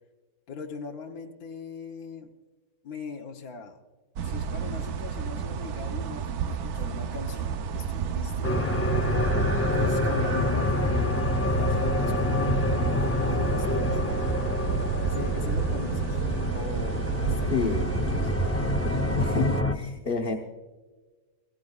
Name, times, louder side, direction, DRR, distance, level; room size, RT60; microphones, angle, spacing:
voice 1, 0.5-2.3 2.8-3.8 4.2-8.5 9.6-11.2 11.5-14.1 15.0-16.2 16.5-17.8 18.1-18.3, left 4 dB, 80° left, 2 dB, 1.5 m, -40 dB
sound 1, 4.2-19.6, right 7 dB, 85° right, 1.3 m, -31 dB
sound 2, 8.4-19.7, left 2 dB, 15° left, 0.4 m, -27 dB
voice 2, 17.5-17.9 19.2-20.4, left 5 dB, 40° left, 3 dB, 1.1 m, -29 dB
22.5 x 16.0 x 2.4 m, 1.3 s
omnidirectional pair, 1.6 m